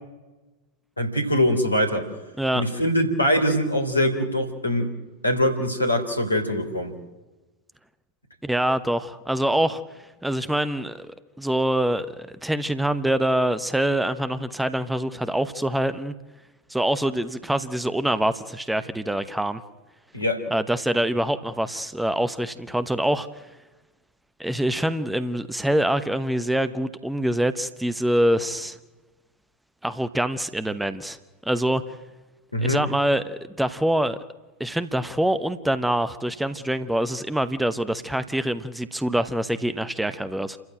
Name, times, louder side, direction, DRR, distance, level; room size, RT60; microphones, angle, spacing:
voice 1, 1.0-2.1 2.5-4.9 5.2-6.9 20.1-20.4 32.5-32.8, equal, 80° left, 8 dB, 3.5 m, -23 dB
voice 2, 8.4-9.8 10.2-11.1 11.4-16.1 16.7-19.6 20.5-23.5 24.4-28.8 29.8-31.2 31.4-31.8 32.6-34.2 34.6-40.6, right 1 dB, 5° right, 12 dB, 1.0 m, -25 dB
29.0 x 14.5 x 8.9 m, 1.2 s
figure-of-eight pair, 90°, 0 cm